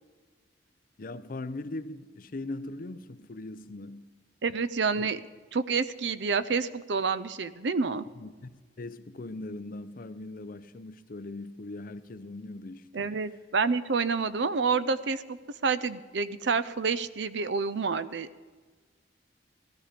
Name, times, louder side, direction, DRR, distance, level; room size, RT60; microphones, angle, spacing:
voice 1, 1.0-4.1 4.9-5.1 8.2-13.1, left 2 dB, 50° left, 0.6 m, -40 dB
voice 2, 4.4-5.2 5.5-8.0 12.9-15.4 15.6-18.3, right 5 dB, 70° right, 0.6 m, -28 dB
17.0 x 13.0 x 5.1 m
head